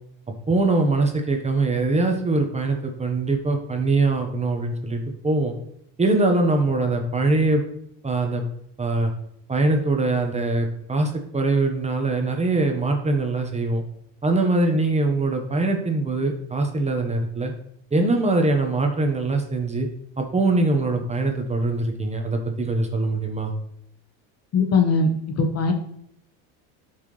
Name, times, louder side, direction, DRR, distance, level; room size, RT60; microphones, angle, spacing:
voice 1, 0.5-5.5 6.0-7.6 8.0-8.4 8.8-9.1 9.5-13.8 14.2-17.5 17.9-19.9 20.2-23.5, right 2 dB, 20° right, 3 dB, 1.4 m, -22 dB
voice 2, 24.5-25.1 25.4-25.7, left 4 dB, 45° left, 4 dB, 1.4 m, -19 dB
12.0 x 5.9 x 3.4 m, 0.70 s
supercardioid pair, 100°, 37 cm